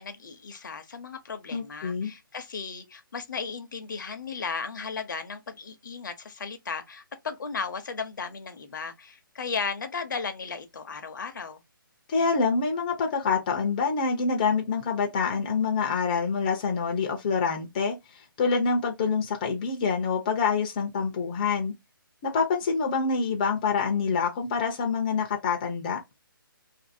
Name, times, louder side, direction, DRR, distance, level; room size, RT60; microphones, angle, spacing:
voice 1, 0.0-11.6, left 5 dB, 60° left, 0.7 m, -35 dB
voice 2, 1.5-2.1 12.1-18.0 18.4-21.7 22.2-26.0, left 5 dB, 25° left, 0.5 m, -26 dB
2.6 x 2.6 x 2.6 m
hypercardioid pair, 160°, 12 cm